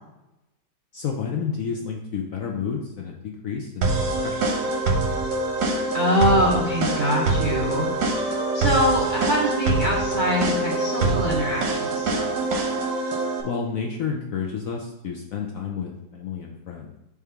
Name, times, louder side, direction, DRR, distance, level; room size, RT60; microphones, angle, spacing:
voice 1, 0.9-4.7 13.4-16.9, left 6 dB, 65° left, 0 dB, 0.8 m, -31 dB
sound 1, 3.8-13.4, right 2 dB, 75° right, 1.6 m, -24 dB
voice 2, 5.9-7.9 8.5-12.4, equal, 50° right, -4 dB, 0.5 m, -24 dB
4.8 x 3.5 x 5.6 m, 0.94 s
omnidirectional pair, 2.0 m